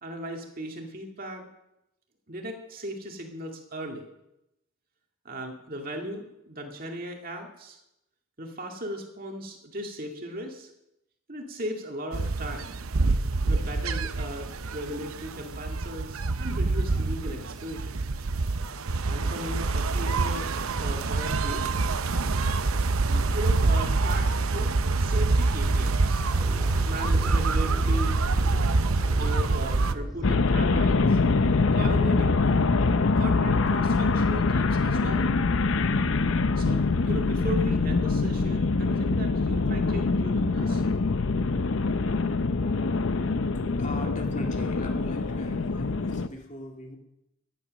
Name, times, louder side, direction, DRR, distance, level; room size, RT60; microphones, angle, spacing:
voice 1, 0.0-1.5 2.3-4.1 5.2-7.8 8.4-10.7 11.3-12.8 13.5-18.0 19.1-21.7 23.0-26.3 26.8-28.2 29.2-31.2 31.7-32.7 33.1-35.3 36.6-40.8, equal, 40° right, 3 dB, 2.1 m, -37 dB
sound 1, 12.1-29.9, right 3 dB, 80° right, 0.8 m, -26 dB
sound 2, 26.2-33.0, equal, ahead, 3.0 m, -39 dB
sound 3, 30.2-46.3, left 3 dB, 65° left, 0.6 m, -24 dB
voice 2, 43.5-47.0, left 1 dB, 35° left, 2 dB, 2.1 m, -40 dB
14.5 x 10.0 x 6.3 m, 0.87 s
head